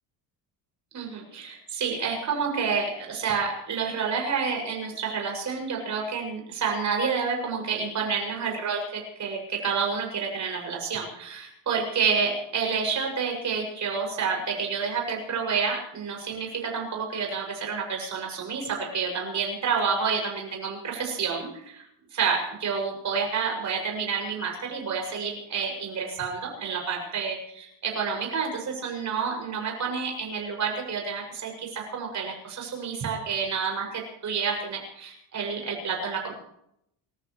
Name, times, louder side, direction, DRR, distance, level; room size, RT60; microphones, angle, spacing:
voice 1, 0.9-21.8 22.1-36.3, right 5 dB, 40° right, 1 dB, 6.7 m, -29 dB
29.0 x 14.5 x 3.2 m, 0.75 s
cardioid pair, 150°, 45 cm